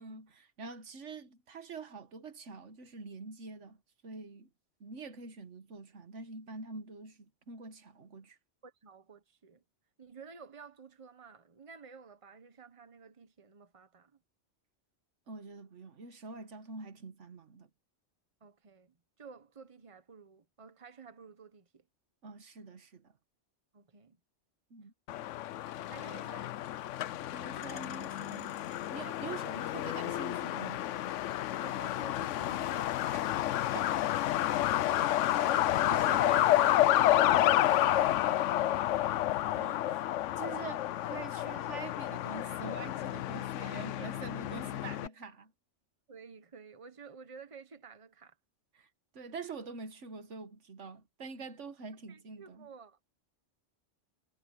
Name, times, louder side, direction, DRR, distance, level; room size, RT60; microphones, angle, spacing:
voice 1, 0.0-3.8 4.0-4.5 4.8-8.4 15.3-17.7 22.2-23.1 24.7-24.9 27.3-28.6 28.9-30.9 33.7-33.9 35.4-35.5 35.8-36.4 39.5-40.1 40.4-45.5 48.7-48.9 49.1-52.7, right 4 dB, 80° right, 1.6 m, -45 dB
voice 2, 8.6-9.6 10.0-14.2 18.4-21.9 23.7-24.2 25.1-25.5 25.9-26.5 27.5-27.9 28.5-29.2 31.2-33.0 33.3-33.6 35.9-36.3 36.9-38.3 38.7-39.1 43.9-44.1 46.1-48.4 52.1-53.0, right 5 dB, 30° right, 1.2 m, -52 dB
Truck, 25.1-45.1, left 13 dB, 85° left, 0.9 m, -30 dB
omnidirectional pair, 1.2 m